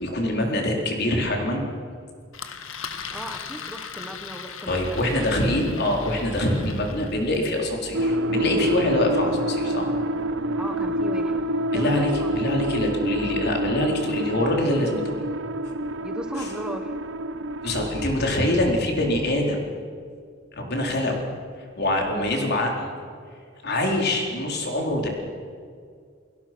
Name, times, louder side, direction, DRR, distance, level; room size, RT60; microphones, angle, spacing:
voice 1, 0.0-1.6 4.7-9.9 11.7-15.2 16.4-16.5 17.6-19.6 20.6-21.2 21.8-22.9 23.6-25.1, left 1 dB, 55° left, 1 dB, 4.3 m, -24 dB
Engine, 2.3-7.6, left 6 dB, 80° left, 1.7 m, -38 dB
voice 2, 3.1-5.2 10.6-11.4 11.7-12.6 16.0-16.9 17.6-17.8, equal, 5° right, 4 dB, 1.4 m, -37 dB
sound 1, 7.9-18.1, right 1 dB, 65° right, 0.9 m, -27 dB
30.0 x 17.0 x 6.2 m, 2.2 s
head